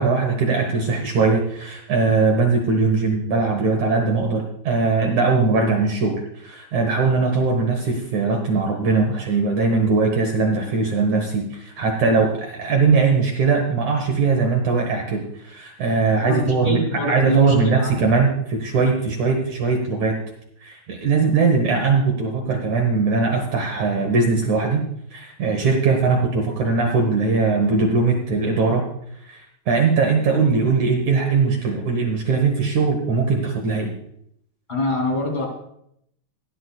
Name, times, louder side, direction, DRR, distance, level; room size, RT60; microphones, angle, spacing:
voice 1, 0.0-20.1 20.6-24.8 25.1-28.8 29.3-33.9, right 4 dB, 70° right, 2 dB, 1.8 m, -20 dB
voice 2, 16.3-17.9 34.7-35.4, left 1 dB, 15° left, 0 dB, 2.3 m, -25 dB
17.0 x 11.0 x 2.3 m, 0.73 s
omnidirectional pair, 5.0 m